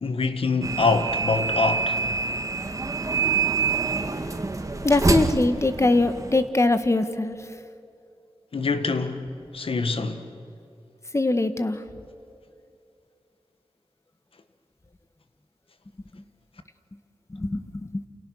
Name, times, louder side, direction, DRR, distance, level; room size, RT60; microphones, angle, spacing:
voice 1, 0.0-2.0 8.5-9.3 9.5-10.2, left 4 dB, 75° left, 1.6 m, -25 dB
sound 1, 0.6-6.5, right 4 dB, 35° right, 1.8 m, -26 dB
voice 2, 4.8-7.4 11.1-11.8 17.3-18.0, left 2 dB, 30° left, 1.5 m, -22 dB
29.0 x 28.0 x 6.4 m
wide cardioid pair, 60°, 9 cm